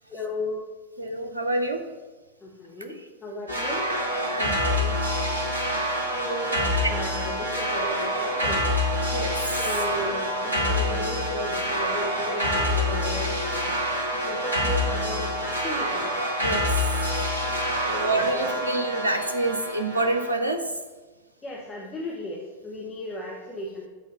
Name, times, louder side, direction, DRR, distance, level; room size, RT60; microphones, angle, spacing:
voice 1, 0.1-0.6 2.4-3.9 6.2-8.6 9.6-13.7 14.3-16.1 17.9-18.4 21.4-23.9, left 1 dB, 15° left, -3 dB, 1.1 m, -35 dB
voice 2, 1.0-1.8 3.9-4.0 4.3-5.0 9.1-9.6 14.2-14.3 16.4-16.8 17.8-20.6, right 2 dB, 80° right, 6 dB, 0.6 m, -27 dB
sound 1, 3.5-20.3, equal, 90° left, 1.1 m, -26 dB
7.3 x 4.0 x 5.5 m, 1.2 s
figure-of-eight pair, 90°, 0 cm